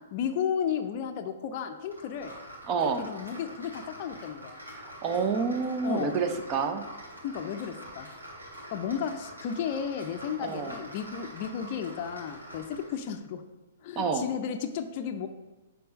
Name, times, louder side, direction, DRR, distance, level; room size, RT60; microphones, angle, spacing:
voice 1, 0.1-2.4 3.0-4.6 5.8-6.2 7.2-8.1 8.7-13.4 13.8-15.3, left 8 dB, 40° left, 6 dB, 0.5 m, -33 dB
sound 1, 1.9-13.0, equal, 90° right, 2.0 m, -45 dB
voice 2, 2.7-3.0 4.7-6.8 10.4-10.8 14.0-14.3, right 5 dB, 30° right, 7 dB, 0.7 m, -28 dB
6.7 x 4.0 x 5.1 m, 1.1 s
figure-of-eight pair, 115°, 0 cm